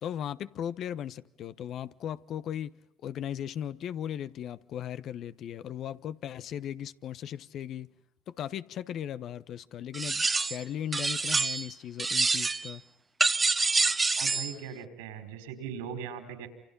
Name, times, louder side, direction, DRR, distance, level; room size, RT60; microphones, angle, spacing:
voice 1, 0.0-7.9 8.3-12.8, left 10 dB, 60° left, 1.1 m, -37 dB
sound 1, 9.9-10.6 10.9-11.7 12.0-12.7 13.2-14.5, right 3 dB, 25° right, 1.2 m, -27 dB
voice 2, 14.2-16.5, right 7 dB, 85° right, 4.8 m, -39 dB
28.5 x 28.0 x 5.6 m
hypercardioid pair, 70°, 0 cm